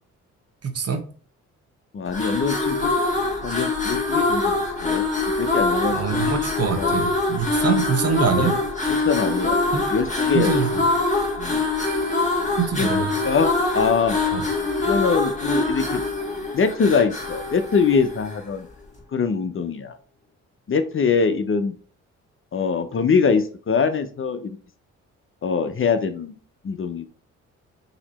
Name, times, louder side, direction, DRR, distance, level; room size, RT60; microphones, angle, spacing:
voice 1, 0.6-1.0 5.9-8.5 9.7-9.8 10.3-10.9 12.6-13.1 14.3-14.4, right 6 dB, 50° right, 6 dB, 1.1 m, -24 dB
voice 2, 1.9-2.9 3.4-4.6 4.8-5.0 5.4-6.2 6.8-7.0 7.6-7.7 8.4-8.6 9.0-10.5 11.4-11.6 12.8-12.9 13.2-14.2 14.8-16.0 16.5-18.7 19.1-20.0 20.7-21.7 22.5-24.6 25.4-26.4 26.6-27.0, left 5 dB, 40° left, 10 dB, 0.7 m, -23 dB
sound 1, 2.1-18.5, left 3 dB, 25° left, 1.9 m, -24 dB
4.1 x 2.9 x 4.1 m, 0.42 s
supercardioid pair, 60°, 31 cm